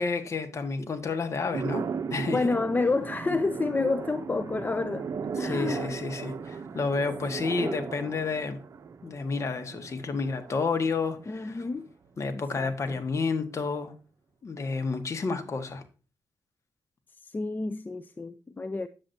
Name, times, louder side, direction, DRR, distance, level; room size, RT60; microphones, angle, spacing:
voice 1, 0.0-1.8 2.1-2.4 5.4-8.6 9.0-11.6 12.2-13.9 14.4-15.8, left 4 dB, 45° left, 1.6 m, -30 dB
sound 1, 1.5-11.9, right 6 dB, 50° right, 0.7 m, -37 dB
voice 2, 2.3-5.1 5.4-6.0 7.6-7.9 11.3-11.9 12.3-13.0 17.2-18.9, left 3 dB, 25° left, 0.5 m, -30 dB
9.8 x 7.9 x 2.8 m
cardioid pair, 80°, 7 cm